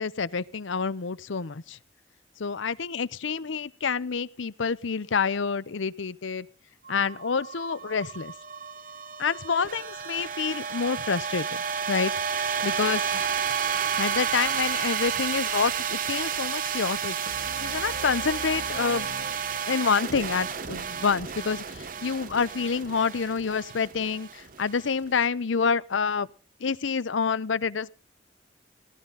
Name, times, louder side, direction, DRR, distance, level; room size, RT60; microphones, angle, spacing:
voice 1, 0.0-1.8 2.4-6.5 6.9-8.3 9.2-11.6 11.9-12.1 12.6-13.2 14.0-17.2 17.6-19.1 19.7-26.3 26.6-27.9, left 5 dB, 85° left, 19 dB, 0.7 m, -28 dB
sound 1, 6.8-25.2, right 7 dB, 45° right, 0.9 m, -31 dB
sound 2, 17.3-20.2, left 2 dB, 65° left, 1.5 m, -42 dB
18.0 x 12.5 x 4.1 m, 0.35 s
head